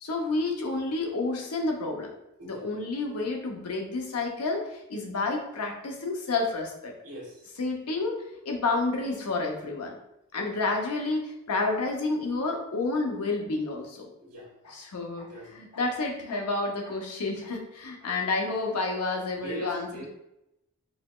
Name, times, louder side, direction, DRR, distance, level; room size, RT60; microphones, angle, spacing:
voice 1, 0.0-2.1 2.4-6.9 7.6-10.0 10.3-14.1 14.6-20.1, left 3 dB, 85° left, 1 dB, 0.7 m, -30 dB
voice 2, 7.0-7.4 14.2-14.5 15.3-15.5 19.4-20.1, left 1 dB, 70° right, -2 dB, 1.2 m, -39 dB
4.1 x 2.9 x 2.3 m, 0.86 s
head